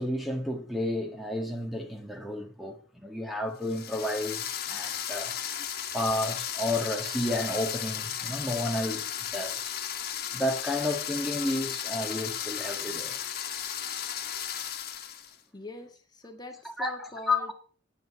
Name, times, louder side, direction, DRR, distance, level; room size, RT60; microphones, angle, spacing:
voice 1, 0.0-5.7 5.9-9.8 10.3-13.3 16.6-17.5, left 1 dB, ahead, 1.6 m, -32 dB
sound 1, 3.6-15.3, left 9 dB, 60° left, 1.6 m, -35 dB
voice 2, 15.5-17.5, left 1 dB, 25° left, 1.6 m, -43 dB
9.5 x 9.4 x 7.8 m
head